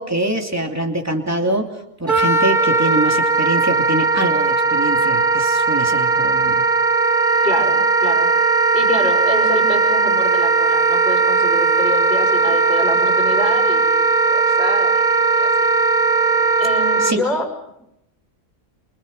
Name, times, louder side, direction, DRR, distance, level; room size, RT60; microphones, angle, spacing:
voice 1, 0.0-1.7 2.0-6.6 17.0-17.2, right 1 dB, 10° right, 3 dB, 2.9 m, -24 dB
Wind instrument woodwind instrument, 2.1-17.1, right 4 dB, 35° right, 1.7 m, -17 dB
voice 2, 7.4-8.3 8.7-15.1 15.4-15.7 16.6-17.5, left 2 dB, 35° left, 4 dB, 5.5 m, -27 dB
29.0 x 29.0 x 5.5 m, 0.80 s
omnidirectional pair, 1.5 m